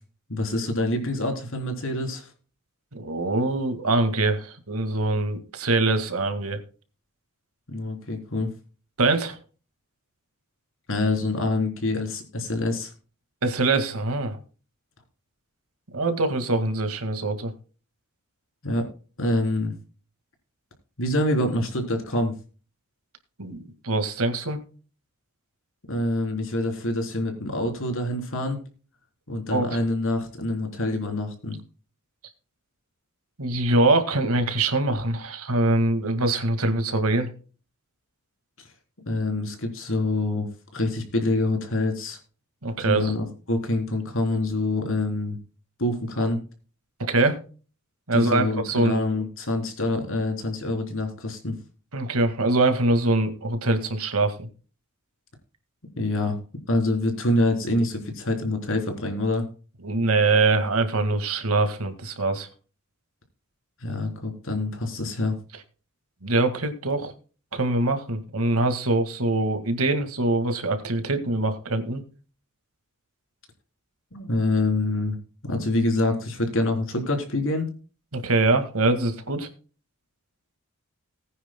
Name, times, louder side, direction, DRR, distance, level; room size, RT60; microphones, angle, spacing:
voice 1, 0.3-2.3 7.7-8.5 10.9-12.9 18.6-18.9 19.2-19.7 21.0-22.4 25.9-28.6 29.3-31.6 38.6-38.7 39.1-42.2 42.8-45.4 45.8-46.4 48.1-51.6 56.0-56.4 56.7-59.5 63.8-65.4 74.1-75.2 75.4-77.7, left 2 dB, 60° left, 4 dB, 3.6 m, -26 dB
voice 2, 2.9-6.6 9.0-9.4 13.4-14.4 15.9-17.5 23.4-23.6 23.8-24.6 29.5-29.7 33.4-37.3 42.6-43.1 47.0-47.4 48.1-49.0 51.9-54.5 59.8-62.5 66.2-67.1 67.5-72.0 78.1-79.5, right 2 dB, 75° right, 8 dB, 1.9 m, -23 dB
19.5 x 9.6 x 2.2 m, 0.37 s
head